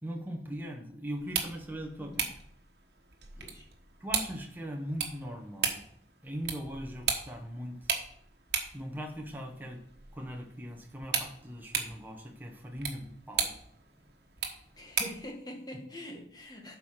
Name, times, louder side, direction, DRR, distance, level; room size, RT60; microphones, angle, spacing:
voice 1, 0.0-2.3 3.3-3.5 4.0-5.8 6.2-7.9 8.7-9.8 10.1-13.5 14.0-14.1, equal, 10° right, 2 dB, 1.1 m, -40 dB
sound 1, 1.2-15.3, right 6 dB, 65° right, 1.3 m, -37 dB
voice 2, 3.4-3.7 14.8-16.8, equal, 25° left, 1 dB, 1.5 m, -44 dB
7.8 x 4.9 x 5.8 m, 0.67 s
head